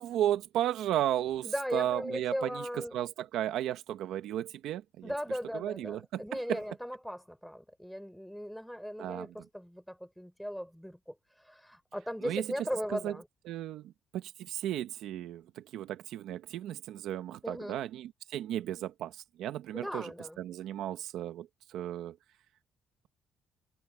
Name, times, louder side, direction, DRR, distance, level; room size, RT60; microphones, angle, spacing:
voice 1, 0.0-5.1 5.5-6.6 9.0-9.3 12.2-12.5 12.9-13.1 13.5-20.1 20.4-22.2, right 12 dB, 85° right, 1.2 m, -34 dB
voice 2, 1.4-3.0 5.0-11.1 11.4-13.3 17.4-17.8 19.7-20.4, equal, ahead, 5.6 m, -38 dB
cardioid pair, 90°, 0 cm